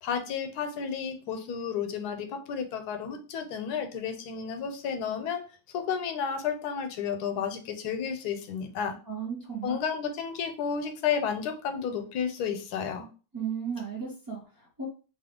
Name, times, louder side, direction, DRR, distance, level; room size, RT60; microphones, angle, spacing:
voice 1, 0.0-5.4 5.7-9.0 9.6-13.1, left 7 dB, 90° left, 7 dB, 1.1 m, -32 dB
voice 2, 9.1-9.8 13.3-14.8, right 7 dB, 30° right, -3 dB, 0.3 m, -35 dB
2.9 x 2.3 x 3.5 m, 0.36 s
omnidirectional pair, 1.6 m